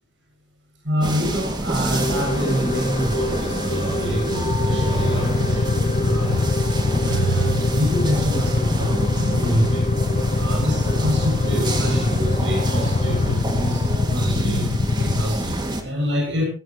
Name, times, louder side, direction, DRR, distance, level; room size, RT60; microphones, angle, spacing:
voice 1, 0.8-6.5 7.0-9.9 10.3-13.8 14.1-16.4, equal, 80° right, 0 dB, 7.3 m, -26 dB
sound 1, 1.0-15.8, right 1 dB, 25° right, 2.3 m, -28 dB
sound 2, 1.9-13.3, left 1 dB, 40° left, 0.9 m, -30 dB
Motorcycle / Idling, 4.5-15.2, left 3 dB, 85° left, 0.6 m, -23 dB
19.5 x 15.5 x 3.1 m, 0.37 s
head